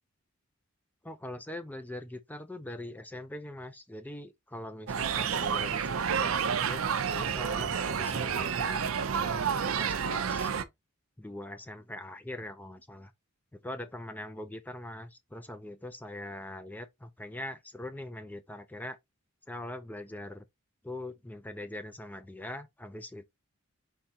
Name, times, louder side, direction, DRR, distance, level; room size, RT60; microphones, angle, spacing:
voice 1, 1.0-10.5 11.2-13.1 13.5-19.0 19.5-20.4 20.8-23.2, left 1 dB, 10° left, 0.4 m, -42 dB
sound 1, 4.9-10.6, right 7 dB, 75° right, 0.5 m, -30 dB
4.5 x 3.8 x 2.8 m
head